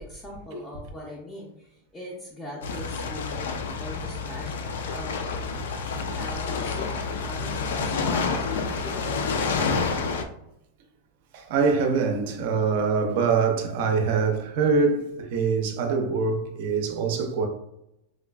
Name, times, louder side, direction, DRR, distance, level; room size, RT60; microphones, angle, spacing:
voice 1, 0.0-5.7 6.1-9.9, left 1 dB, 5° left, 0.5 m, -41 dB
sound 1, 2.6-10.2, left 4 dB, 85° left, 0.4 m, -29 dB
voice 2, 11.3-17.5, right 5 dB, 50° right, 0.5 m, -24 dB
4.8 x 2.3 x 2.3 m
supercardioid pair, 175°, 0 cm